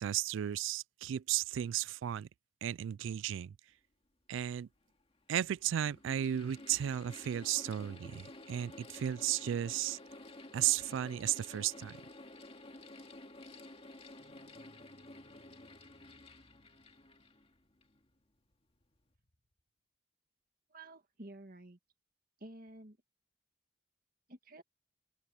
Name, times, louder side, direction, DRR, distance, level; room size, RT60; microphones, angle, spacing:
voice 1, 0.0-2.3 2.6-3.6 4.3-4.7 5.3-10.0 10.5-12.0, right 11 dB, 80° right, 0.3 m, -34 dB
Mechanical fan, 4.4-4.5 5.3-18.0, left 2 dB, 30° left, 2.1 m, -52 dB
sound 1, 14.2-19.6 22.7-22.8, equal, 55° left, 4.8 m, -68 dB
voice 2, 20.7-21.8 22.4-23.0 24.3-24.6, right 1 dB, 50° right, 1.9 m, -51 dB
open air
head